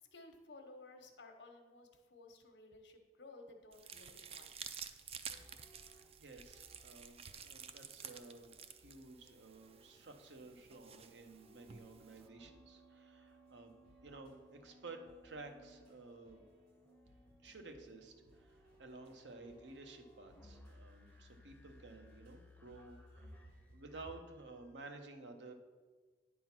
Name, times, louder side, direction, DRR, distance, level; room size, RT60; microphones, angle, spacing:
voice 1, 0.1-4.5, left 2 dB, 75° left, 4 dB, 1.0 m, -56 dB
sound 1, 3.7-12.3, right 7 dB, 35° right, 0.4 m, -52 dB
sound 2, 5.3-24.7, equal, 10° left, 0.6 m, -63 dB
voice 2, 5.9-13.7 14.0-14.4 14.6-16.4 17.4-25.5, right 3 dB, 80° right, 5 dB, 0.9 m, -54 dB
sound 3, 13.2-23.8, equal, 55° right, 2.3 m, -71 dB
9.5 x 3.8 x 5.9 m, 1.4 s
head